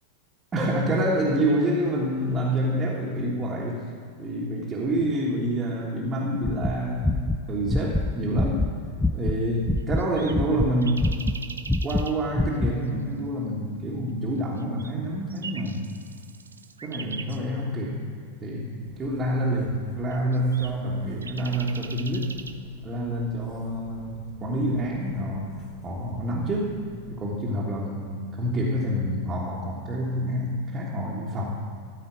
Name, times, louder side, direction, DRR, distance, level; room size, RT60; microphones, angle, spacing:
voice 1, 0.5-3.8 4.2-8.6 9.1-11.1 11.8-15.9 16.8-18.1 18.4-22.3 22.8-25.5 25.8-26.8 27.1-31.6, right 1 dB, 20° right, -5 dB, 1.4 m, -27 dB
sound 1, 6.4-9.4 9.6-12.1 12.3-12.8, left 2 dB, 5° left, 0.3 m, -25 dB
sound 2, 9.6-12.1 14.6-17.4 20.1-22.5, right 5 dB, 75° right, 0.5 m, -41 dB
sound 3, 18.8-27.2, left 1 dB, 35° left, 1.9 m, -49 dB
13.0 x 5.0 x 8.7 m, 2.2 s
figure-of-eight pair, 90°, 0 cm